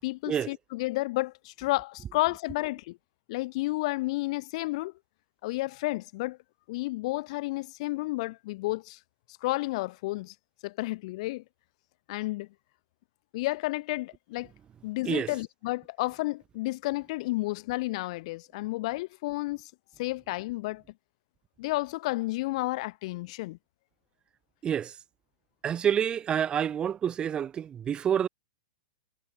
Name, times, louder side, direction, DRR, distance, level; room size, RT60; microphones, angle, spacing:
voice 1, 0.0-3.0 3.3-4.9 5.4-6.4 6.7-9.0 9.4-10.3 10.6-11.4 12.1-12.5 13.3-14.5 14.8-19.7 20.0-20.8 21.6-23.6, left 20 dB, 55° left, 5.2 m, -31 dB
voice 2, 24.6-24.9 25.6-28.3, right 9 dB, 20° right, 1.0 m, -28 dB
hypercardioid pair, 125°, 4 cm